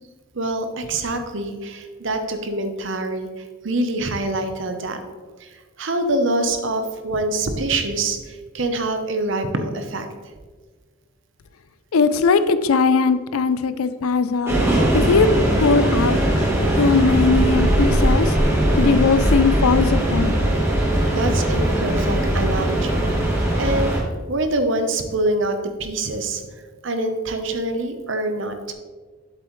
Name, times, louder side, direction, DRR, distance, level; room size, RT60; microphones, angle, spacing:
voice 1, 0.3-5.0 5.4-10.1 21.1-23.3 23.6-23.9 24.3-26.4 26.8-28.7, right 2 dB, 60° right, 7 dB, 0.8 m, -25 dB
voice 2, 11.9-14.6 14.9-15.3 15.6-16.2 16.8-18.4 18.8-20.4, left 5 dB, 85° left, 13 dB, 0.5 m, -19 dB
sound 1, 14.4-24.0, right 1 dB, 10° right, 1.2 m, -19 dB
7.7 x 7.6 x 3.1 m, 1.4 s
head